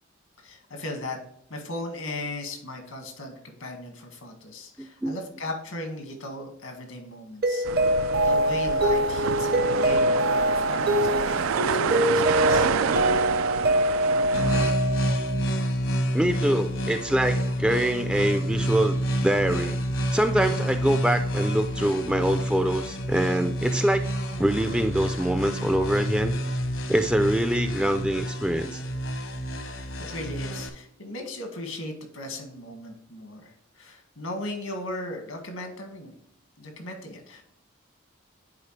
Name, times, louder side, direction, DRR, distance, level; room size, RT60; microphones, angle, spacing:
voice 1, 0.4-1.2 1.5-12.7 29.7-36.2 36.6-37.4, left 1 dB, 85° left, 3 dB, 1.9 m, -37 dB
voice 2, 4.8-5.2 16.1-19.8 20.1-24.1 24.4-26.3 26.9-28.8, right 1 dB, 5° right, 7 dB, 0.4 m, -24 dB
Mallet percussion, 7.4-15.6, equal, 45° right, 0.7 m, -24 dB
sound 1, 7.7-14.7, right 7 dB, 80° right, 0.4 m, -28 dB
sound 2, 14.3-30.7, equal, 70° left, 1.0 m, -28 dB
9.7 x 4.4 x 3.2 m, 0.70 s
head